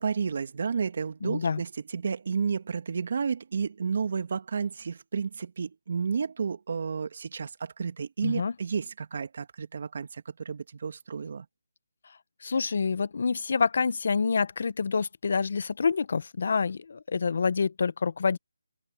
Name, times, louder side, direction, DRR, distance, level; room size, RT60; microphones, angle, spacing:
voice 1, 0.0-11.5, right 6 dB, 50° right, 2.0 m, -31 dB
voice 2, 1.2-1.6 8.2-8.5 12.4-18.4, left 5 dB, 50° left, 0.9 m, -27 dB
open air
figure-of-eight pair, 165°, 0 cm